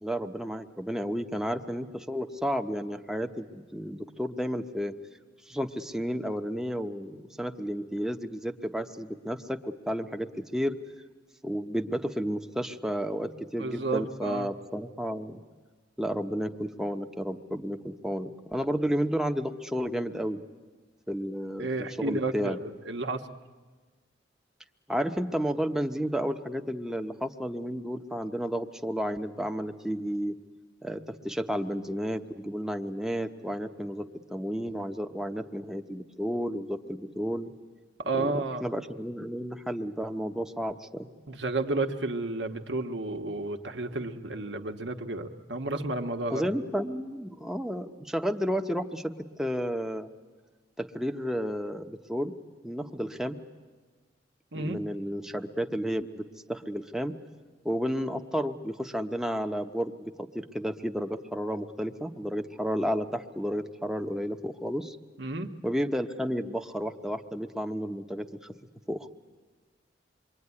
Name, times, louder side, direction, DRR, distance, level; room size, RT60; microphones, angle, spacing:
voice 1, 0.0-4.9 5.5-10.8 11.4-15.4 16.0-20.4 21.1-22.6 24.9-30.4 30.8-37.5 38.2-38.3 38.6-41.1 46.3-49.1 49.4-50.1 50.8-52.3 52.6-53.4 54.5-57.1 57.6-65.0 65.6-68.3 68.9-69.1, equal, 5° right, 6 dB, 0.9 m, -32 dB
voice 2, 13.6-14.5 21.6-23.3 38.0-38.7 41.3-46.4 54.5-54.8 65.2-65.5, right 2 dB, 75° right, 6 dB, 1.4 m, -32 dB
27.0 x 23.0 x 9.8 m, 1.3 s
head